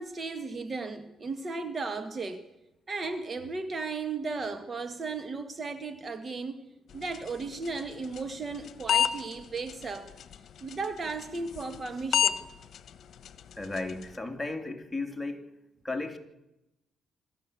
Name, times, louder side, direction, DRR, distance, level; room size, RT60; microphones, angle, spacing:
voice 1, 0.0-2.4 2.9-6.6 6.9-10.1 10.6-12.4, right 4 dB, 35° right, 1.8 m, -35 dB
sound 1, 6.9-14.2, left 9 dB, 60° left, 1.3 m, -34 dB
voice 2, 13.6-15.5 15.8-16.2, left 2 dB, 10° left, 3.2 m, -34 dB
25.5 x 14.0 x 8.3 m
cardioid pair, 90°, 0 cm